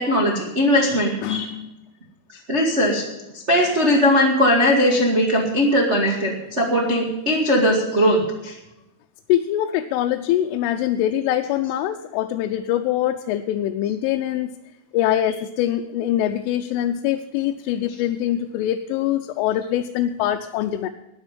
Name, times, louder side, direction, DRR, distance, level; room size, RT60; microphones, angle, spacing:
voice 1, 0.0-1.4 2.5-3.0 3.5-8.6, equal, 75° right, -2 dB, 0.6 m, -19 dB
voice 2, 1.2-1.7 9.3-14.5 14.9-20.9, left 12 dB, 90° left, 5 dB, 3.2 m, -23 dB
13.0 x 9.7 x 8.9 m, 0.93 s
omnidirectional pair, 5.6 m